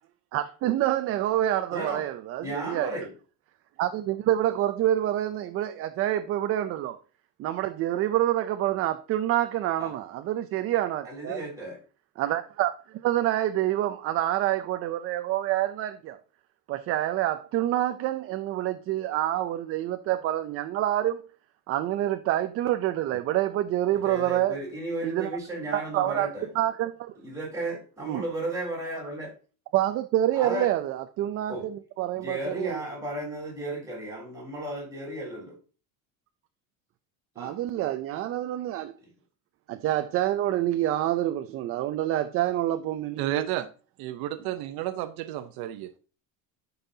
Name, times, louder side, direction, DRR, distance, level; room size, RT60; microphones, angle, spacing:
voice 1, 0.3-2.9 3.8-7.0 7.4-11.4 12.2-16.2 16.7-21.2 21.7-24.6 25.0-25.3 25.7-26.3 26.6-27.1 28.0-28.2 29.7-32.8 37.4-38.9 39.7-43.4, right 13 dB, 40° right, 0.4 m, -27 dB
voice 2, 1.7-2.0 2.4-3.1 9.8-9.9 11.0-11.8 23.9-26.5 27.2-29.3 30.3-30.7 31.5-31.6 32.1-35.6 37.4-37.6, right 1 dB, 10° right, 4.0 m, -34 dB
voice 3, 43.2-43.7 44.0-46.0, right 13 dB, 70° right, 0.8 m, -31 dB
12.5 x 5.5 x 2.7 m
cardioid pair, 170°, 38 cm